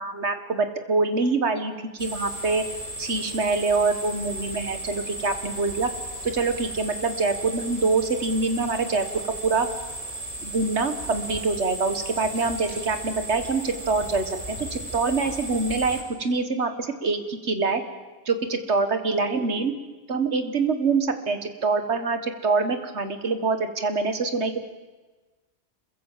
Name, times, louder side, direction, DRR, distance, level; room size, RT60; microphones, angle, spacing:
voice 1, 0.0-2.6 3.0-5.9 6.2-9.0 9.4-9.7 10.4-17.8 18.3-19.7 20.1-24.6, right 4 dB, 80° right, 8 dB, 2.0 m, -25 dB
sound 1, 2.0-16.0, right 1 dB, 30° right, 6.5 m, -36 dB
27.0 x 22.5 x 7.6 m, 1.3 s
omnidirectional pair, 1.1 m